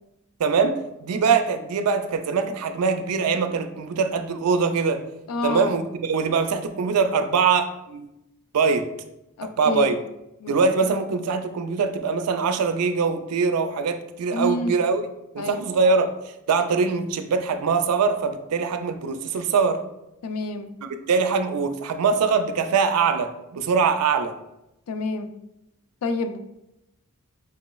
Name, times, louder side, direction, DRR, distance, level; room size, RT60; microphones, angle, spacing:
voice 1, 0.4-5.0 5.4-8.1 8.5-8.9 9.6-10.0 10.5-15.0 15.3-16.1 16.5-19.8 20.8-24.3, right 5 dB, 90° right, 8 dB, 0.4 m, -23 dB
voice 2, 5.3-5.7 9.4-9.9 10.4-10.5 14.3-14.8 15.4-15.6 20.2-20.7 24.9-25.3 26.0-26.4, left 2 dB, 85° left, 8 dB, 0.4 m, -28 dB
4.8 x 3.0 x 2.3 m, 0.88 s
head